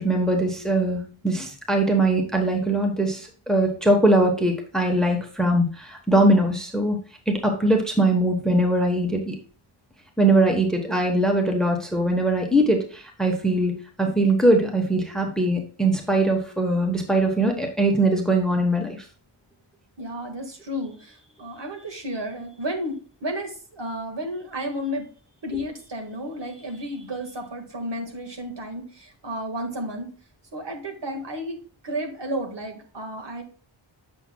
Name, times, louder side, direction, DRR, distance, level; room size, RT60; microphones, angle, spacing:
voice 1, 0.0-7.0 7.3-9.3 10.2-19.0, right 1 dB, ahead, 3 dB, 1.0 m, -21 dB
voice 2, 20.0-25.1 25.4-30.1 30.5-31.6 31.8-33.4, equal, 60° right, 3 dB, 1.8 m, -32 dB
7.8 x 6.1 x 2.2 m, 0.41 s
wide cardioid pair, 105°, 48 cm